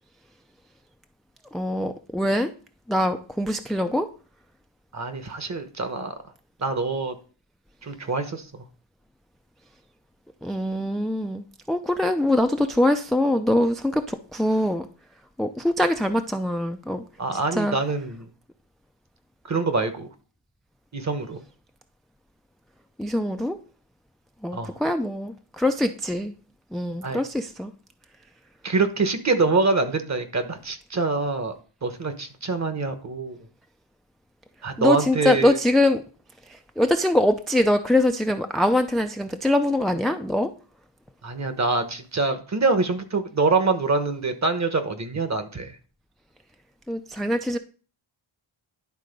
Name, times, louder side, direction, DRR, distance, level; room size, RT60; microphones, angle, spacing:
voice 1, 1.5-2.5 2.9-4.1 10.4-14.9 15.4-17.0 17.3-17.8 23.0-23.6 24.4-26.3 26.7-27.7 34.8-36.0 36.5-40.5 46.9-47.6, left 1 dB, ahead, 6 dB, 0.4 m, -23 dB
voice 2, 4.9-6.1 6.6-7.1 7.8-8.5 17.2-18.3 19.5-20.1 20.9-21.4 24.5-24.8 27.0-27.2 28.6-33.4 34.6-35.6 41.2-45.8, right 3 dB, 35° right, 9 dB, 1.2 m, -25 dB
11.0 x 3.8 x 5.2 m, 0.39 s
wide cardioid pair, 105°, 47 cm